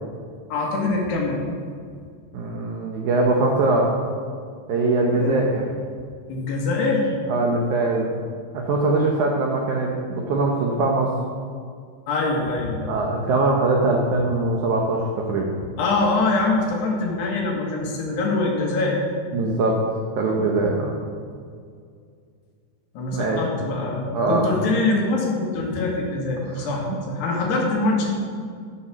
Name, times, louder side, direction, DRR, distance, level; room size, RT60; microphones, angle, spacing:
voice 1, 0.5-1.4 5.1-5.4 6.3-7.2 12.1-13.0 15.8-19.0 23.0-28.1, left 3 dB, 75° left, -2 dB, 3.8 m, -24 dB
voice 2, 2.3-3.9 4.7-5.6 7.3-8.2 8.5-11.1 12.9-15.5 19.3-19.9 20.2-20.9 23.1-23.4 24.1-24.5 26.5-26.7, right 2 dB, 80° right, 0 dB, 1.7 m, -22 dB
13.5 x 5.7 x 6.2 m, 2.2 s
omnidirectional pair, 4.9 m